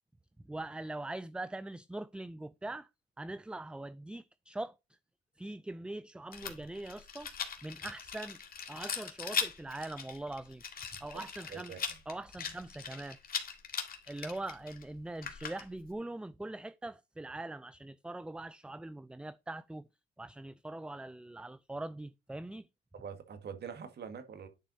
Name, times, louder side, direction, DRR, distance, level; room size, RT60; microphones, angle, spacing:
voice 1, 0.5-2.9 3.2-4.8 5.4-7.3 7.6-8.4 8.7-10.6 11.0-11.8 12.1-13.2 14.1-19.8 20.2-22.7, right 2 dB, 5° right, 0.3 m, -42 dB
Rattle, 6.3-15.9, left 6 dB, 50° left, 2.0 m, -40 dB
voice 2, 22.9-24.5, right 7 dB, 55° right, 1.7 m, -44 dB
10.5 x 4.2 x 4.0 m
cardioid pair, 90°, 20 cm